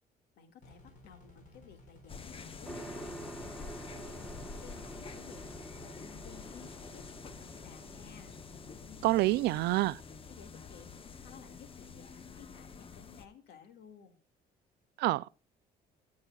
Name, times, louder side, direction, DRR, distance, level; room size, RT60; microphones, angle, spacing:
voice 1, 0.4-3.7 4.0-8.3 8.9-10.0 10.3-11.0 11.2-14.2, left 7 dB, 80° left, 2.1 m, -56 dB
sound 1, 0.6-5.9, left 2 dB, 50° left, 4.5 m, -57 dB
sound 2, 2.1-13.3, left 5 dB, 30° left, 0.9 m, -48 dB
sound 3, 2.6-12.8, right 2 dB, ahead, 1.5 m, -49 dB
voice 2, 9.0-10.0 15.0-15.4, right 18 dB, 80° right, 0.4 m, -27 dB
15.5 x 9.6 x 2.4 m
cardioid pair, 110°, 17 cm